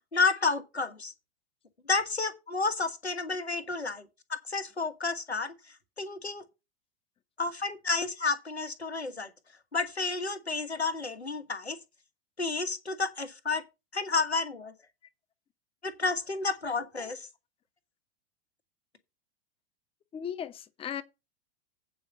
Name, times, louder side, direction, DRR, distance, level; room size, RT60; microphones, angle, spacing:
voice 1, 0.1-1.1 1.9-5.5 6.0-6.4 7.4-9.3 9.7-11.8 12.4-13.6 13.9-14.7 15.8-17.3, left 3 dB, 85° left, 1.5 m, -31 dB
voice 2, 20.1-21.0, left 8 dB, 15° left, 0.8 m, -37 dB
8.5 x 5.2 x 6.5 m
figure-of-eight pair, 95°, 31 cm